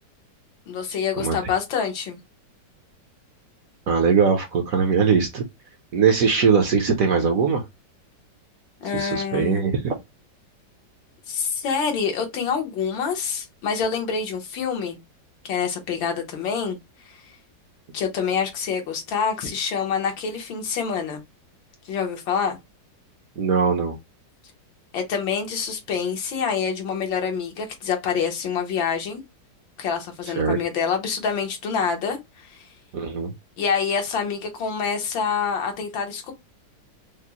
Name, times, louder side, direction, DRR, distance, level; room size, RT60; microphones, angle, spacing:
voice 1, 0.7-2.2 8.8-9.6 11.3-15.0 15.4-16.8 17.0-17.2 17.9-21.2 21.9-22.6 24.9-29.2 29.8-32.7 33.6-36.3, left 6 dB, 85° left, 1.7 m, -26 dB
voice 2, 3.9-5.4 5.9-7.6 8.9-10.0 23.4-23.9 30.4-30.6 32.9-33.3, right 6 dB, 65° right, 0.9 m, -20 dB
4.9 x 2.0 x 2.8 m
omnidirectional pair, 2.0 m